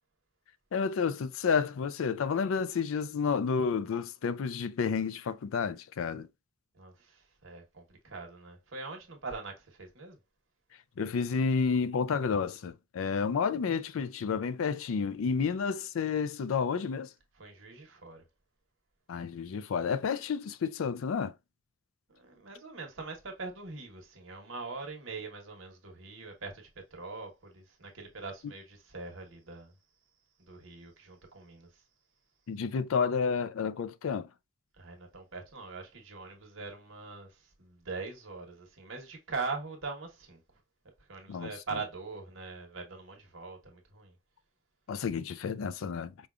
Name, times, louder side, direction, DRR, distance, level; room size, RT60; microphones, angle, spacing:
voice 1, 0.7-6.3 11.0-17.1 19.1-21.3 32.5-34.3 41.3-41.5 44.9-46.3, left 5 dB, 75° left, 0.4 m, -30 dB
voice 2, 6.7-10.2 15.1-15.3 17.3-18.3 22.1-29.7 30.4-31.8 34.7-40.4 41.1-44.1, right 4 dB, 70° right, 1.2 m, -42 dB
5.0 x 2.4 x 2.4 m
head